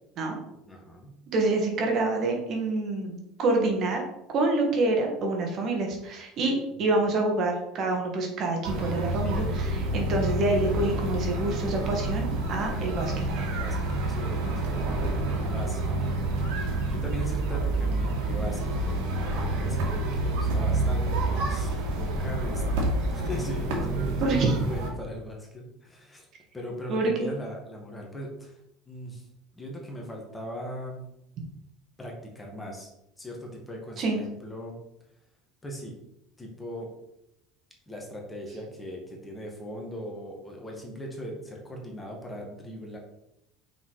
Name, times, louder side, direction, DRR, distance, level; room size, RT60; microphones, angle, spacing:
voice 1, 0.7-1.1 6.8-7.0 13.3-13.8 14.1-16.3 16.5-26.3 26.5-28.6 28.9-29.3 29.5-31.0 32.0-32.9 33.2-34.8 35.6-35.9 36.4-36.9 37.9-43.0, equal, 10° left, -1 dB, 2.0 m, -39 dB
voice 2, 1.3-4.0 4.3-13.5 24.2-24.5 26.9-27.3 34.0-34.2, right 2 dB, 45° right, 1 dB, 2.0 m, -27 dB
sound 1, 8.6-24.9, right 2 dB, 75° right, 2.3 m, -28 dB
6.2 x 5.4 x 4.9 m, 0.83 s
supercardioid pair, 120°, 0 cm